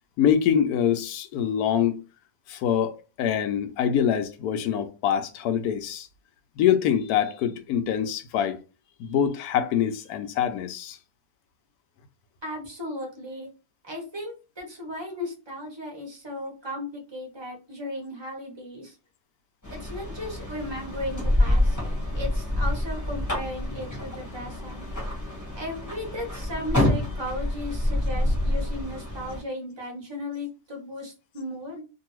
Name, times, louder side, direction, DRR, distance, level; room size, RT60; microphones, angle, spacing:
voice 1, 0.2-2.0 2.5-6.1 6.6-8.6 9.0-11.0, left 9 dB, 70° left, 1.0 m, -24 dB
voice 2, 12.4-13.5 13.8-18.9 19.7-21.8 22.1-24.9 25.5-31.8, left 1 dB, 25° right, 0.6 m, -36 dB
sound 1, 19.6-29.4, left 1 dB, 15° left, 0.9 m, -27 dB
2.7 x 2.6 x 2.9 m
omnidirectional pair, 1.8 m